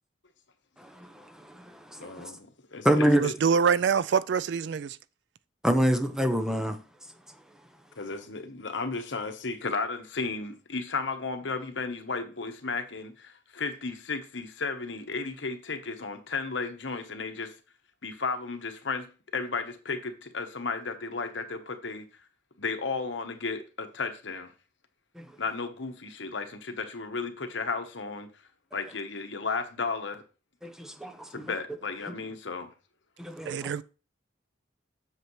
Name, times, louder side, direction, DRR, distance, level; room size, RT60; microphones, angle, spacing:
voice 1, 0.8-2.3 2.8-3.2 5.6-6.8 25.2-25.3 30.6-31.3 32.1-32.2 33.2-33.7, right 1 dB, 5° right, 0.7 m, -27 dB
voice 2, 2.0-3.3 8.0-17.5 18.0-19.1 19.3-22.1 22.6-24.5 25.4-28.3 28.7-30.2 31.3-32.7, left 4 dB, 70° left, 1.1 m, -34 dB
voice 3, 3.2-5.0 33.5-33.8, right 6 dB, 65° right, 0.3 m, -25 dB
7.9 x 6.8 x 3.1 m
head